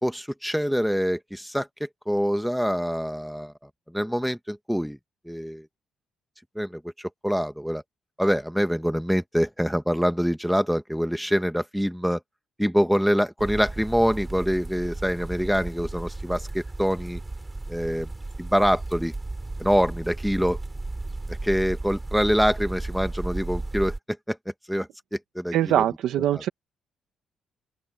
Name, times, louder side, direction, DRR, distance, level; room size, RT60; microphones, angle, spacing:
voice 1, 0.0-3.5 3.9-5.0 5.2-5.6 6.5-7.8 8.2-12.2 12.6-17.2 17.7-18.1 18.4-19.1 19.6-20.6 21.3-23.9 24.3-24.4 24.7-25.8 26.3-26.4, equal, ahead, 1.3 m, -25 dB
sound 1, 13.4-24.0, right 2 dB, 15° right, 6.3 m, -34 dB
voice 2, 25.5-26.5, right 12 dB, 80° right, 1.0 m, -22 dB
open air
cardioid pair, 90°, 0 cm